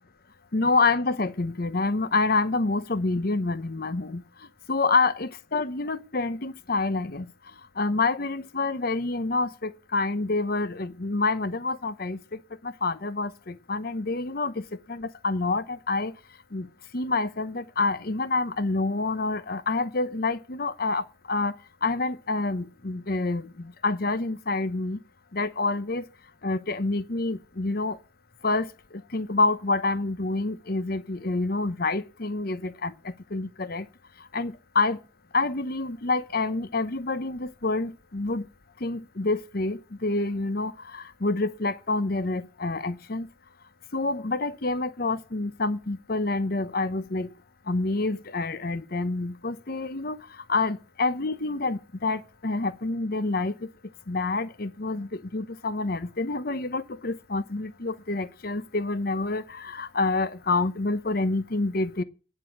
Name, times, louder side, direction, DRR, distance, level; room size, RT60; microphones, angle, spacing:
voice 1, 0.5-4.2 4.7-7.3 7.8-14.6 14.9-16.1 16.5-16.7 16.9-21.6 21.8-25.0 25.3-26.0 26.4-28.0 28.4-28.7 29.1-33.9 34.3-35.0 35.3-38.5 38.8-43.3 43.9-47.3 47.7-50.2 50.5-53.5 54.1-62.0, left 3 dB, 50° left, 0.9 m, -27 dB
9.9 x 8.2 x 6.5 m
head